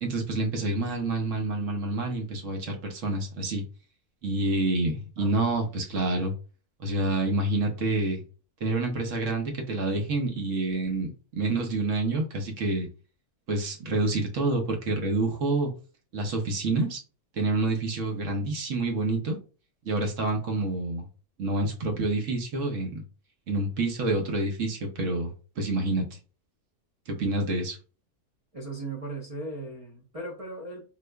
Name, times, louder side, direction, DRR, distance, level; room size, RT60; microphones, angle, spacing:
voice 1, 0.0-3.6 4.2-6.3 6.8-8.2 8.6-12.9 13.5-15.7 16.1-17.0 17.4-19.4 19.8-21.0 21.4-23.0 23.5-26.0 27.1-27.8, right 2 dB, 60° right, 3 dB, 1.1 m, -28 dB
voice 2, 28.5-30.8, right 2 dB, 45° right, -5 dB, 0.4 m, -37 dB
4.3 x 2.4 x 2.2 m, 0.35 s
omnidirectional pair, 1.6 m